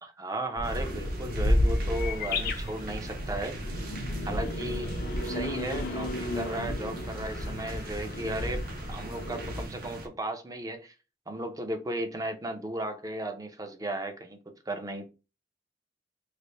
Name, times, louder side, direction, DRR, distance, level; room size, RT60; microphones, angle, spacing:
voice 1, 0.0-3.6 4.3-5.0 5.2-10.9 11.3-14.4 14.7-15.0, right 1 dB, 20° right, 0.5 m, -35 dB
sound 1, 0.6-9.6, left 1 dB, 55° left, 0.6 m, -31 dB
sound 2, 0.6-10.1, right 2 dB, 55° right, 0.7 m, -42 dB
3.3 x 2.1 x 3.9 m
head